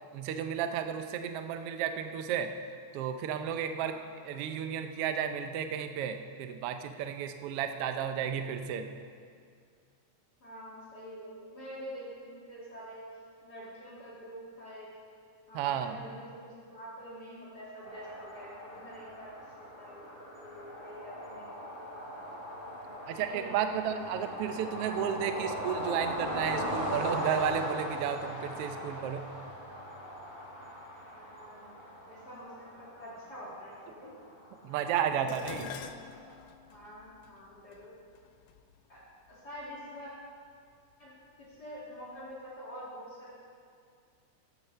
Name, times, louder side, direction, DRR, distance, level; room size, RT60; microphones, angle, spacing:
voice 1, 0.1-2.5 2.9-4.0 4.2-8.9 15.5-16.0 23.1-29.3 34.6-35.6, right 8 dB, 80° right, 7 dB, 1.3 m, -33 dB
voice 2, 10.4-13.1 13.4-14.9 15.5-22.1 22.8-24.0 31.1-31.7 32.1-34.1 34.7-34.9 35.2-36.0 36.7-38.0 38.9-39.0 39.3-40.1 41.0-41.1 41.4-43.3, equal, 35° left, -7 dB, 2.7 m, -46 dB
sound 1, 17.8-36.4, equal, 15° left, 3.4 m, -39 dB
Dishes pots and pans, 35.3-39.6 40.5-40.9 41.3-42.2 42.4-42.5, left 8 dB, 85° left, 2.1 m, -49 dB
12.0 x 8.1 x 6.7 m, 2.2 s
omnidirectional pair, 3.5 m